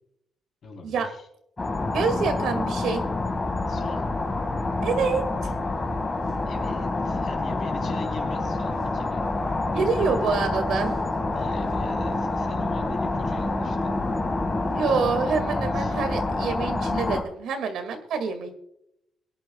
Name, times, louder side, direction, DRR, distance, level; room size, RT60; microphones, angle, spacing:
voice 1, 0.6-1.3 3.7-4.1 6.4-9.5 11.3-13.9 15.7-16.0, left 4 dB, 45° left, 2 dB, 3.8 m, -40 dB
sound 1, 1.6-17.2, left 2 dB, 20° left, 2.0 m, -27 dB
voice 2, 1.9-3.0 4.8-5.6 9.7-11.0 14.7-18.6, right 5 dB, 70° right, 7 dB, 2.1 m, -27 dB
22.5 x 11.0 x 2.3 m, 0.77 s
cardioid pair, 145°, 0 cm